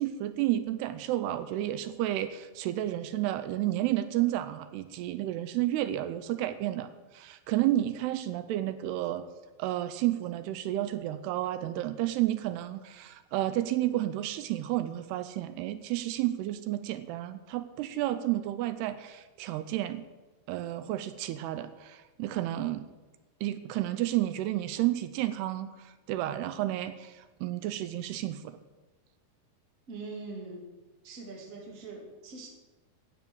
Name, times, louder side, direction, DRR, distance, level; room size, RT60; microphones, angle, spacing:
voice 1, 0.0-9.2 9.6-20.0 20.5-22.9 23.4-28.6, right 14 dB, 85° right, 12 dB, 2.7 m, -31 dB
voice 2, 29.9-30.6 31.0-32.5, right 3 dB, 30° right, 0 dB, 1.8 m, -42 dB
13.0 x 9.0 x 6.6 m, 1.2 s
omnidirectional pair, 4.8 m